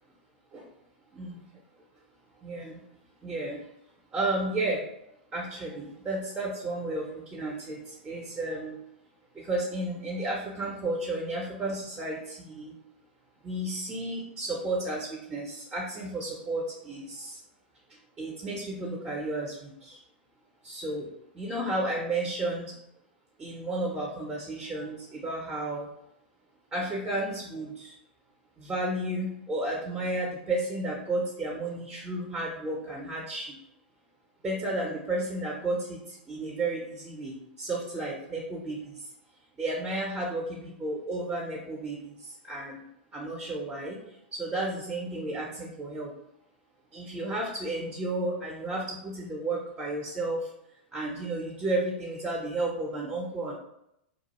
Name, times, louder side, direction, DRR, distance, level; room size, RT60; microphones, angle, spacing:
voice 1, 2.4-2.8 3.2-3.6 4.1-4.8 5.3-8.8 9.3-12.7 13.4-17.4 18.2-20.0 20.6-21.1 21.3-22.7 23.4-25.9 26.7-27.9 28.6-33.6 34.4-36.0 36.3-38.9 39.6-42.8 43.1-44.0 44.3-46.1 46.9-50.5 50.9-53.5, right 2 dB, 20° right, -2 dB, 0.5 m, -32 dB
2.3 x 2.1 x 2.9 m, 0.79 s
hypercardioid pair, 100°, 5 cm